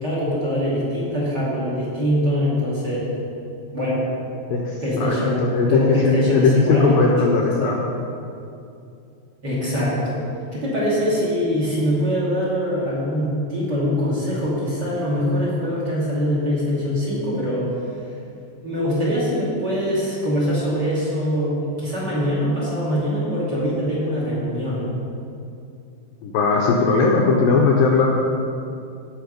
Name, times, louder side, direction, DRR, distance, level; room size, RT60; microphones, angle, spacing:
voice 1, 0.0-3.1 3.7-4.0 4.8-5.4 5.7-7.8 9.4-10.2 10.5-17.7 18.6-24.9, equal, 30° right, -7 dB, 2.6 m, -23 dB
voice 2, 4.5-5.2 5.4-7.8 26.2-28.1, left 4 dB, 75° left, -1 dB, 2.2 m, -18 dB
17.0 x 5.7 x 5.3 m, 2.5 s
omnidirectional pair, 4.6 m